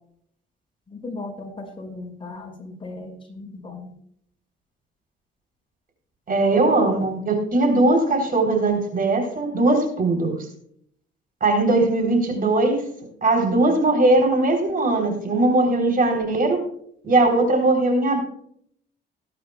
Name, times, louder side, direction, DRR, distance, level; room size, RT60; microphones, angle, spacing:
voice 1, 0.9-3.9, left 2 dB, 25° left, 1 dB, 5.3 m, -37 dB
voice 2, 6.3-10.4 11.4-12.8 13.2-16.6 17.0-18.2, right 2 dB, 45° right, 4 dB, 3.6 m, -19 dB
20.0 x 9.9 x 2.3 m, 0.65 s
cardioid pair, 90°, 20 cm